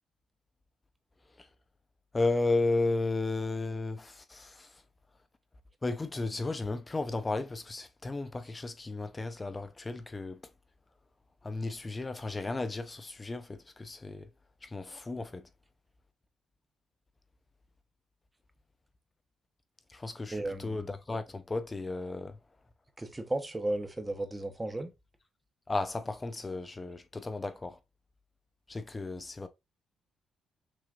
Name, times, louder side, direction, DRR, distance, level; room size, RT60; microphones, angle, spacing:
voice 1, 2.1-4.7 5.8-10.4 11.4-14.3 14.6-15.5 19.9-22.4 25.7-27.8 28.7-29.5, left 3 dB, 25° left, 0.7 m, -34 dB
voice 2, 20.3-20.8 23.0-24.9, right 1 dB, 15° right, 1.1 m, -34 dB
6.1 x 3.3 x 2.5 m
cardioid pair, 90°, 0 cm